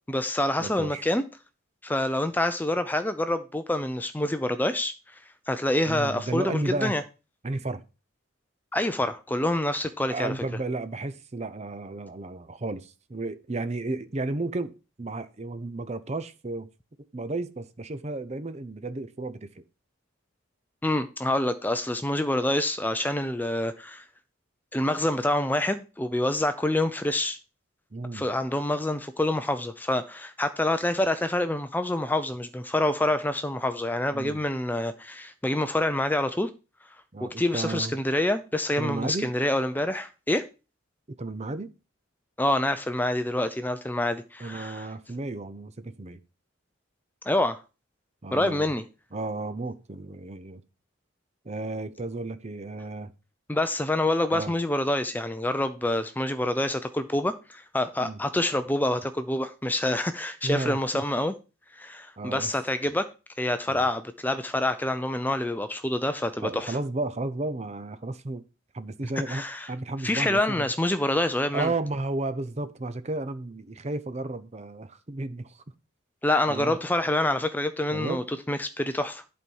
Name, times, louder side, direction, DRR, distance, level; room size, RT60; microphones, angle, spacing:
voice 1, 0.1-1.2 1.8-4.9 5.5-7.0 8.7-10.3 20.8-24.0 24.7-27.4 28.1-36.5 37.2-40.5 42.4-44.9 47.3-47.6 48.3-48.8 53.5-61.3 61.7-63.1 63.4-66.8 69.3-69.7 70.0-71.7 76.2-79.2, left 1 dB, 10° left, 0.5 m, -27 dB
voice 2, 0.6-1.0 5.9-7.0 7.4-7.8 10.1-16.7 17.1-19.6 27.9-28.3 34.1-34.4 37.1-38.0 38.8-39.3 41.2-41.7 44.4-46.2 48.2-48.7 49.1-50.6 51.4-53.1 54.3-54.5 58.0-58.2 60.4-61.0 62.2-62.5 63.7-63.9 66.4-68.4 68.7-70.7 71.5-75.6 76.5-76.8 77.9-78.2, right 2 dB, 30° right, 0.6 m, -33 dB
11.0 x 4.4 x 5.5 m
head